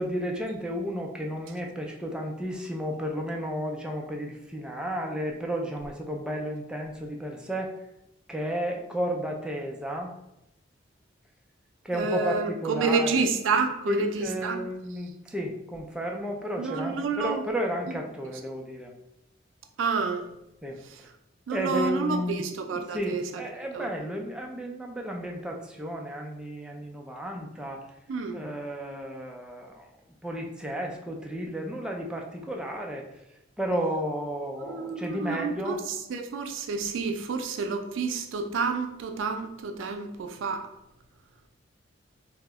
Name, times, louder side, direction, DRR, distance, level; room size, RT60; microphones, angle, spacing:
voice 1, 0.0-7.8 8.3-10.1 11.8-13.3 13.9-18.9 20.6-20.8 21.5-22.4 22.7-27.8 28.3-29.9 30.2-33.0 33.6-35.8, equal, 5° right, 0 dB, 0.3 m, -33 dB
voice 2, 11.9-14.6 16.6-17.4 19.8-20.2 21.5-23.2 23.7-23.9 28.1-28.4 34.7-35.8 36.1-40.6, right 4 dB, 80° right, 6 dB, 0.4 m, -29 dB
2.8 x 2.0 x 3.4 m, 0.84 s
head